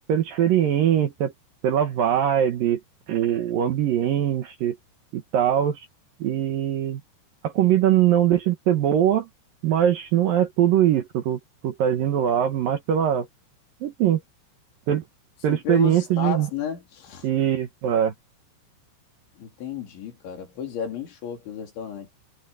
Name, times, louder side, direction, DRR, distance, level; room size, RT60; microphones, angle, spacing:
voice 1, 0.1-1.3 1.6-2.8 3.1-4.8 5.1-5.9 6.2-7.0 7.4-9.3 9.6-13.3 13.8-14.2 14.9-15.0 15.4-16.5 17.2-18.1, right 10 dB, 65° right, 2.5 m, -22 dB
voice 2, 15.5-17.3 19.4-22.1, left 8 dB, 75° left, 6.4 m, -32 dB
omnidirectional pair, 5.4 m